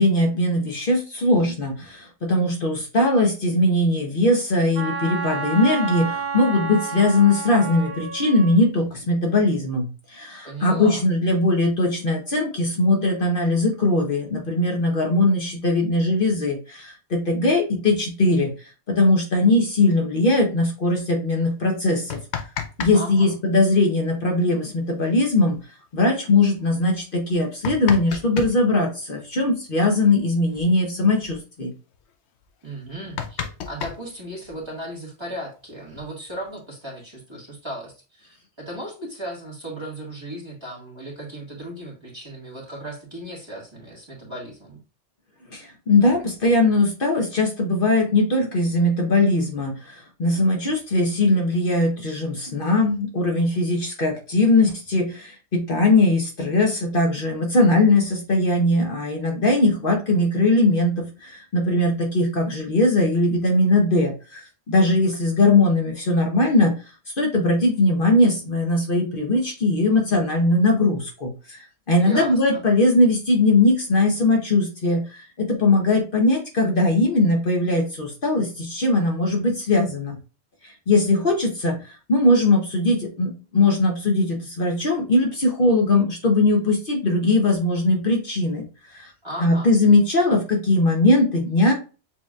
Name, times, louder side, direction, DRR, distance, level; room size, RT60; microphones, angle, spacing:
voice 1, 0.0-18.5 18.9-22.2 22.8-25.6 25.9-31.7 45.5-66.7 67.2-71.6 71.9-80.2 80.9-89.1 89.4-91.7, left 2 dB, 50° left, 1 dB, 1.1 m, -20 dB
Wind instrument woodwind instrument, 4.7-8.6, right 5 dB, 50° right, 1.3 m, -30 dB
voice 2, 10.4-11.1 22.9-23.3 32.6-44.8 72.0-72.6 89.2-89.7, right 1 dB, 25° right, -3 dB, 1.7 m, -36 dB
sound 1, 21.9-23.0 23.2-23.3 25.1-25.2 25.5-25.6 26.3-26.4 27.2-28.6 30.1-30.2 30.5-30.7 31.0-31.4 31.9-32.0 32.4-32.5 32.8-34.7 35.6-36.4, left 7 dB, 75° left, 0.9 m, -32 dB
7.2 x 3.0 x 2.4 m, 0.33 s
omnidirectional pair, 1.2 m